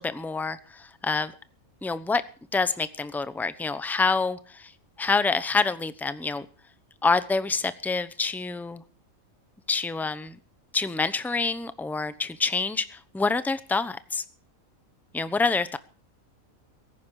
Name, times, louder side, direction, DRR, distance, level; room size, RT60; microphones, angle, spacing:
voice 1, 0.0-1.3 1.8-2.2 2.5-4.4 5.0-6.5 7.0-8.8 9.7-10.4 10.7-14.2 15.1-15.8, left 4 dB, ahead, 13 dB, 0.7 m, -27 dB
17.0 x 15.0 x 4.8 m, 0.39 s
omnidirectional pair, 1.5 m